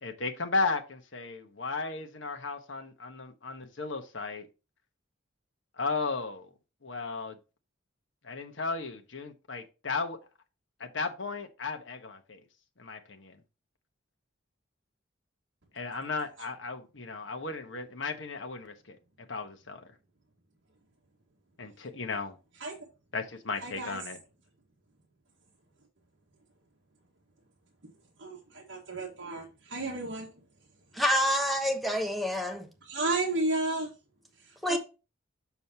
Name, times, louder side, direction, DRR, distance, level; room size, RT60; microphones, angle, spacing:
voice 1, 0.0-4.5 5.8-6.5 6.8-7.3 8.2-10.2 10.8-12.4 12.8-13.4 15.7-19.9 21.6-22.4 23.1-24.2, left 4 dB, 65° left, 1.2 m, -35 dB
voice 2, 23.6-24.0 28.2-30.4 30.9-31.0 32.8-33.9 34.3-34.8, right 2 dB, 65° right, 1.6 m, -33 dB
voice 3, 30.9-32.7 34.6-34.8, equal, ahead, 1.0 m, -27 dB
7.0 x 6.3 x 2.9 m
head